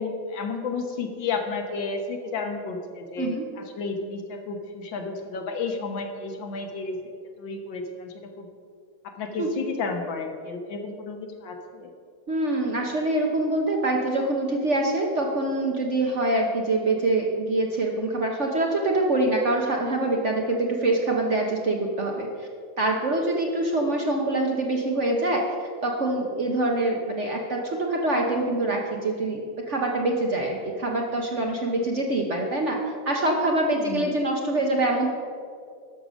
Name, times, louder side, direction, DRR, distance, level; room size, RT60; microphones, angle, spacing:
voice 1, 0.0-7.0 7.4-8.5 9.0-11.9 33.7-34.1, left 4 dB, 70° left, 4 dB, 1.8 m, -32 dB
voice 2, 12.3-22.5 22.8-35.1, right 2 dB, 45° right, 1 dB, 1.0 m, -25 dB
12.0 x 6.7 x 6.2 m, 2.2 s
omnidirectional pair, 2.2 m